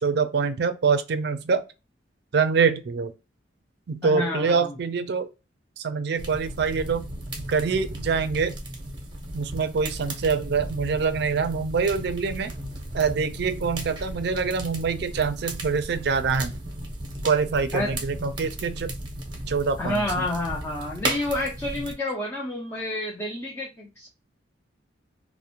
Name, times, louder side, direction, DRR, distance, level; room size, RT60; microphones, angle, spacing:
voice 1, 0.0-1.6 2.3-3.1 3.9-5.3 5.8-7.1 7.5-8.6 9.3-12.5 12.9-16.5 17.2-18.9 19.5-20.2, right 5 dB, 60° right, 0.4 m, -25 dB
voice 2, 4.0-4.8 17.7-17.9 19.8-24.1, left 1 dB, 15° left, 0.4 m, -29 dB
sound 1, 6.2-21.9, right 1 dB, 25° right, 0.7 m, -35 dB
2.5 x 2.1 x 2.8 m
head